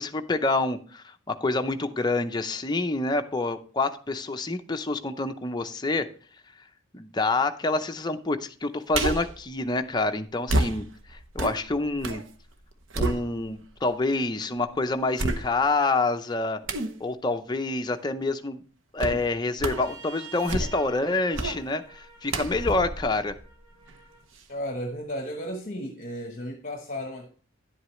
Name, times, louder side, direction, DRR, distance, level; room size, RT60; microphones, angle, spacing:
voice 1, 0.0-6.1 6.9-10.8 11.3-12.2 13.0-16.6 17.0-18.6 18.9-23.4, left 2 dB, 20° left, 0.6 m, -27 dB
sound 1, 8.9-9.4 10.5-12.3 12.6-13.7 14.2-14.3 15.2-15.8 16.7-17.0 19.0-19.2 19.6-19.9 20.3-20.9 21.3-21.6 22.3-24.0 24.4-24.5, right 2 dB, 70° right, 0.9 m, -30 dB
Trumpet, 19.7-24.2, right 4 dB, 85° right, 2.5 m, -49 dB
voice 2, 24.5-27.3, equal, 40° left, 1.0 m, -34 dB
10.5 x 7.9 x 3.1 m
head